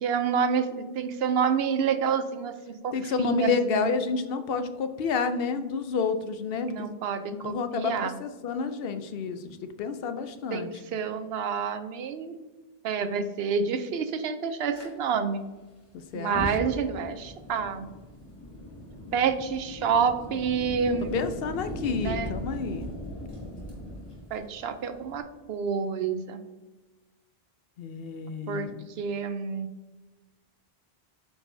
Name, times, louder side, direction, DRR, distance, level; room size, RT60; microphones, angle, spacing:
voice 1, 0.0-2.5 2.8-3.9 6.7-8.1 10.5-12.4 12.8-15.4 16.1-17.8 19.1-21.1 22.0-22.3 24.3-26.4 28.5-28.7 29.0-29.7, right 6 dB, 80° right, 10 dB, 0.8 m, -28 dB
voice 2, 2.9-6.9 7.3-10.7 16.1-16.7 21.1-22.9 27.8-28.9, left 5 dB, 70° left, 10 dB, 0.8 m, -30 dB
Fire, 14.7-14.9 16.1-25.2, equal, 25° left, 2.0 m, -39 dB
8.7 x 4.8 x 2.6 m, 1.2 s
omnidirectional pair, 1.0 m